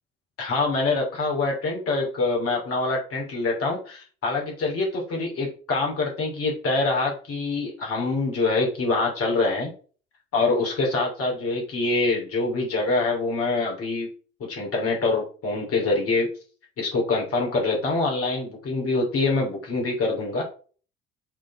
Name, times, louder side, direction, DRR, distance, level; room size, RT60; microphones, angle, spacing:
voice 1, 0.4-9.7 10.3-14.1 14.5-16.3 16.8-20.4, left 3 dB, 50° left, -1 dB, 2.8 m, -25 dB
7.4 x 3.9 x 4.2 m, 0.39 s
figure-of-eight pair, 55°, 31 cm